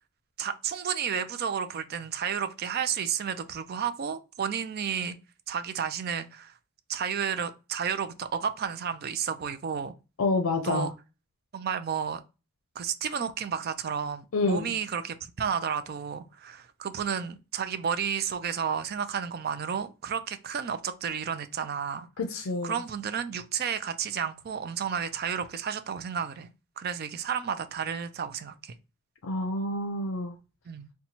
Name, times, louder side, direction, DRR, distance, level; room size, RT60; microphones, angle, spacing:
voice 1, 0.4-5.2 5.5-6.5 6.9-9.9 10.6-10.9 11.5-12.2 12.8-22.1 22.6-26.5 26.8-28.7 30.7-30.9, right 7 dB, 50° right, 0.4 m, -32 dB
voice 2, 10.2-10.9 14.3-14.7 22.2-22.8 29.2-30.4, left 2 dB, 80° left, 0.5 m, -28 dB
4.1 x 2.2 x 2.8 m
head